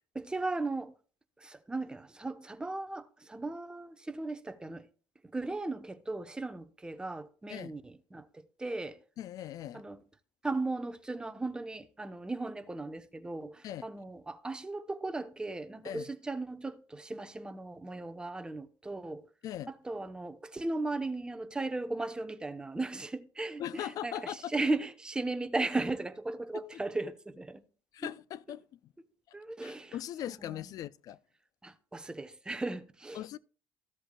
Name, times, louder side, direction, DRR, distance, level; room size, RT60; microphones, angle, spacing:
voice 1, 0.1-0.9 1.4-4.9 5.2-8.3 8.6-9.0 9.7-10.0 10.4-19.2 19.7-27.6 29.3-30.0 30.4-30.5 31.6-33.2, right 2 dB, 10° right, 0.8 m, -36 dB
voice 2, 9.2-9.8 13.6-13.8 15.8-16.1 19.4-19.7 23.6-24.7 27.9-28.8 29.3-29.4 29.6-31.2 33.1-33.4, left 11 dB, 55° left, 0.4 m, -40 dB
14.5 x 7.8 x 2.3 m
cardioid pair, 120°, 7 cm